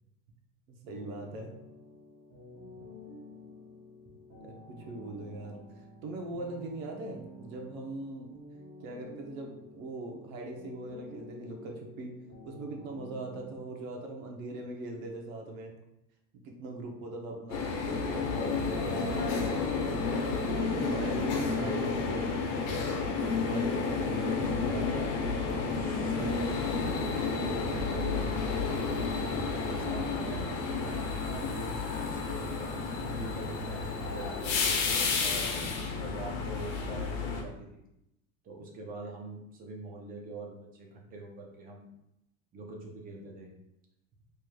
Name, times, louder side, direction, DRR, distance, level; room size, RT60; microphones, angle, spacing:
voice 1, 0.7-1.5 4.4-8.3 8.8-12.1 12.4-15.7 16.4-17.7 18.6-19.3 20.5-22.0 29.7-29.8, right 2 dB, 90° right, 1 dB, 0.9 m, -41 dB
sound 1, 0.9-13.6, left 1 dB, 40° right, 1.0 m, -50 dB
sound 2, 17.5-37.4, left 4 dB, 65° left, 0.9 m, -31 dB
voice 2, 20.9-22.0 23.4-25.1 25.5-26.4 27.4-28.4 29.6-30.5 30.9-35.5 35.8-37.9 38.4-41.9 42.5-43.5, right 2 dB, 20° right, 0 dB, 0.6 m, -43 dB
4.6 x 3.2 x 2.3 m, 0.85 s
cardioid pair, 160°, 40 cm